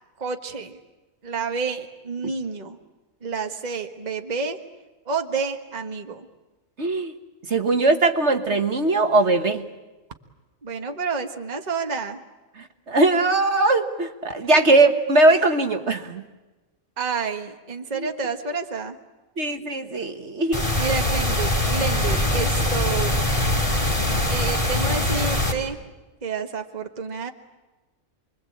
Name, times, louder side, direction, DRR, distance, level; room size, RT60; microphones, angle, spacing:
voice 1, 0.2-0.8 1.2-2.8 3.2-4.6 5.1-6.3 10.6-12.2 14.3-14.6 15.3-15.5 17.0-19.0 20.8-23.3 24.3-25.8 26.2-27.3, right 5 dB, 30° right, 5 dB, 1.5 m, -29 dB
voice 2, 6.8-7.1 7.5-9.6 12.6-16.2 18.0-18.1 19.4-20.6, right 2 dB, 55° right, 6 dB, 1.7 m, -20 dB
sound 1, 20.5-25.5, left 1 dB, 25° left, 3.4 m, -22 dB
28.5 x 22.5 x 8.6 m, 1.2 s
omnidirectional pair, 1.4 m